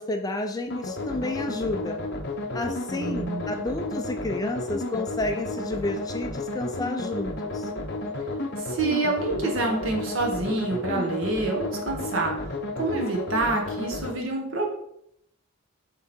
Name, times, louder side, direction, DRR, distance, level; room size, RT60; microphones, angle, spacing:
voice 1, 0.0-2.0 2.5-7.7, left 2 dB, 15° left, 5 dB, 0.4 m, -31 dB
sound 1, 0.7-14.1, left 2 dB, 50° left, 0.8 m, -32 dB
voice 2, 3.0-3.5 8.6-12.3 12.8-14.7, right 3 dB, 60° right, 1 dB, 1.6 m, -27 dB
7.7 x 3.7 x 4.4 m, 0.73 s
head